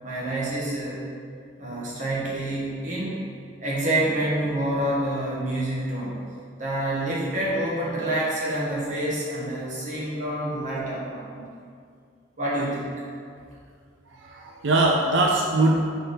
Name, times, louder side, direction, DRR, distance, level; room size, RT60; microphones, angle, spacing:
voice 1, 0.0-1.0 1.6-3.2 3.6-6.2 6.6-11.4 12.4-12.8, right 1 dB, 40° right, -6 dB, 1.4 m, -27 dB
voice 2, 14.1-15.9, right 2 dB, 85° right, 0 dB, 0.5 m, -22 dB
4.3 x 4.1 x 5.3 m, 2.2 s
head